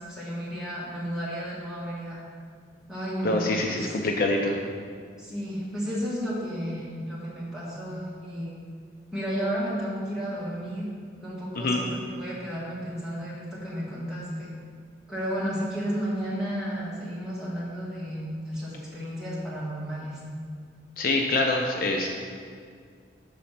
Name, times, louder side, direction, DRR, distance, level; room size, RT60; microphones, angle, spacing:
voice 1, 0.0-2.2 2.9-3.9 5.2-8.5 9.1-10.9 11.2-14.5 15.1-20.2, equal, 5° right, -8 dB, 1.6 m, -32 dB
voice 2, 3.2-4.5 11.6-11.8 21.0-22.1, left 2 dB, 50° left, 1 dB, 0.5 m, -25 dB
6.5 x 4.1 x 5.8 m, 2.1 s
head